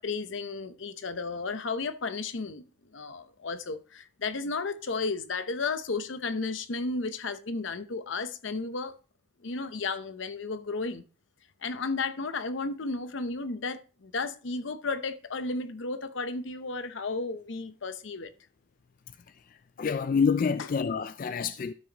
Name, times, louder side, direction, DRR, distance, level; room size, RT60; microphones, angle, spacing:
voice 1, 0.0-2.6 2.9-8.9 9.4-11.0 11.6-18.3 20.6-20.7, left 3 dB, 80° left, 0.8 m, -33 dB
voice 2, 19.8-21.7, left 5 dB, 45° left, 0.3 m, -27 dB
12.5 x 6.0 x 3.0 m
head